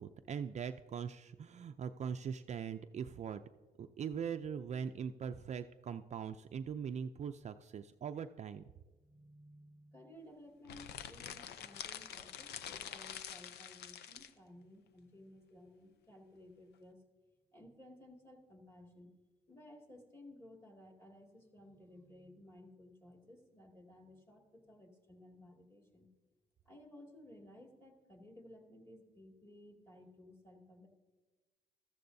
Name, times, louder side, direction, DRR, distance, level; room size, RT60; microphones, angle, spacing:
voice 1, 0.0-3.4 3.8-8.7, right 7 dB, 45° right, 8 dB, 0.4 m, -41 dB
voice 2, 9.0-17.0 17.5-19.1 19.5-26.1 26.6-30.9, left 1 dB, 15° left, 1 dB, 2.3 m, -57 dB
sound 1, 10.6-14.3, left 9 dB, 90° left, 0.6 m, -46 dB
14.5 x 13.5 x 2.7 m, 1.3 s
cardioid pair, 100°, 17 cm